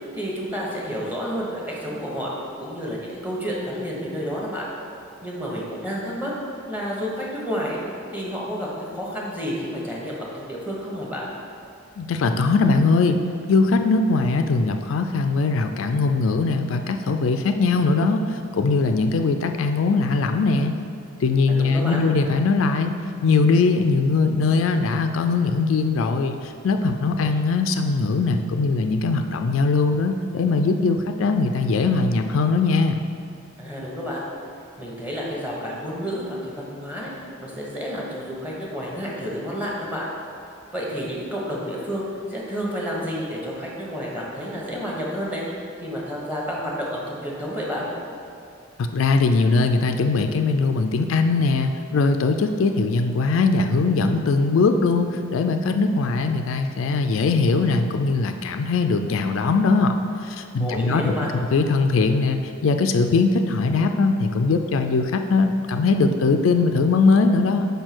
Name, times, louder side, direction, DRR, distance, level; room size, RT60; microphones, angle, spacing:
voice 1, 0.1-2.3 2.6-4.7 5.2-6.3 6.7-7.8 8.1-11.3 21.5-22.0 33.6-34.3 34.8-37.1 37.4-40.1 40.7-45.4 45.8-47.9 60.6-61.3, equal, 10° right, -5 dB, 1.2 m, -30 dB
voice 2, 12.0-13.2 13.5-20.7 21.2-23.0 23.2-33.0 48.9-59.9 60.2-61.1 61.5-67.7, left 3 dB, 70° left, 6 dB, 0.4 m, -21 dB
5.2 x 4.4 x 6.0 m, 2.4 s
head